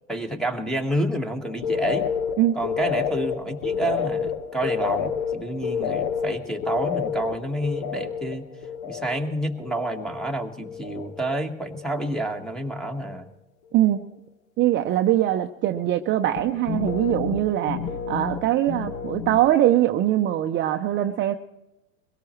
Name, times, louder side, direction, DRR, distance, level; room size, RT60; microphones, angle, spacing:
voice 1, 0.1-2.1 2.5-8.5 8.9-13.3, right 1 dB, ahead, 6 dB, 1.6 m, -29 dB
sound 1, 1.4-10.4 10.6-11.3 11.6-12.3 12.6-13.1 16.4-19.5, left 7 dB, 60° left, 1.5 m, -30 dB
voice 2, 14.6-21.4, right 13 dB, 30° right, 6 dB, 0.6 m, -22 dB
22.5 x 17.5 x 3.2 m, 0.95 s
hypercardioid pair, 110°, 40 cm